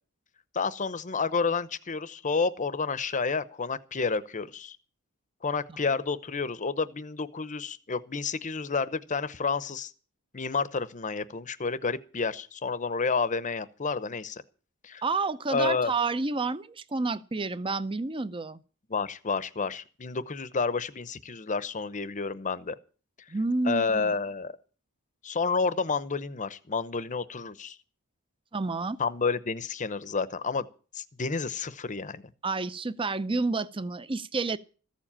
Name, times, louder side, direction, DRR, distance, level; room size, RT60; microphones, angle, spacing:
voice 1, 0.5-4.8 5.4-9.9 10.3-14.4 14.8-15.0 15.5-15.9 18.9-22.8 23.6-24.6 25.2-27.8 29.0-30.7 30.9-32.2, left 4 dB, 35° left, 0.8 m, -30 dB
voice 2, 15.0-18.6 23.3-24.1 28.5-29.0 32.4-34.6, right 3 dB, 25° right, 0.6 m, -29 dB
14.5 x 7.4 x 8.6 m
head